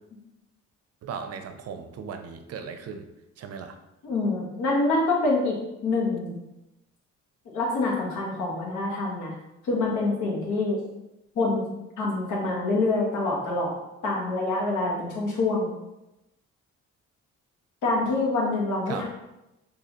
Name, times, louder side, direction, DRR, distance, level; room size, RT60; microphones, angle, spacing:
voice 1, 1.0-3.1 3.4-3.8 18.9-19.0, right 6 dB, 55° right, 7 dB, 0.5 m, -37 dB
voice 2, 4.0-5.5 5.8-6.4 7.4-9.3 9.6-10.8 11.3-11.7 12.0-13.8 14.0-15.7 17.8-19.0, left 2 dB, 80° left, -3 dB, 1.2 m, -26 dB
4.1 x 2.7 x 2.9 m, 0.92 s
cardioid pair, 90°, 30 cm